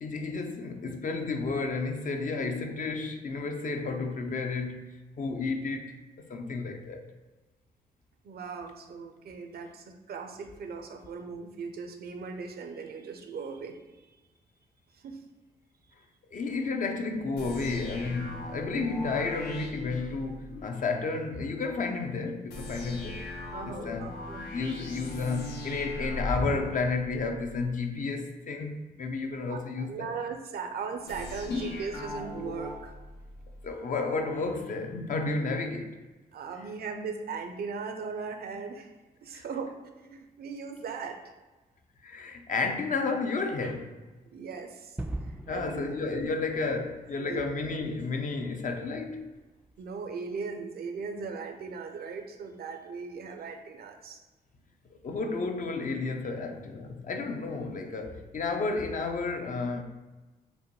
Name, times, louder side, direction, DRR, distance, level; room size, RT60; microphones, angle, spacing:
voice 1, 0.0-7.1 16.3-23.2 23.6-24.1 24.5-30.1 31.5-31.8 33.6-36.0 36.5-36.7 39.3-39.5 42.0-44.0 45.5-49.3 55.0-59.8, left 3 dB, 55° left, 0.5 m, -32 dB
voice 2, 8.2-13.8 14.9-15.2 23.5-24.5 29.5-32.9 36.3-38.9 39.2-41.3 44.3-45.0 45.2-46.3 47.2-47.4 49.8-54.2, right 5 dB, 70° right, 0.6 m, -38 dB
sound 1, 17.4-20.6 22.5-27.7 31.1-33.7, left 1 dB, 85° left, 0.8 m, -39 dB
Gunshot gunfire / Fireworks / Boom, 45.0-49.8, right 1 dB, 10° right, 0.3 m, -43 dB
5.2 x 2.2 x 3.0 m
cardioid pair, 60°, 16 cm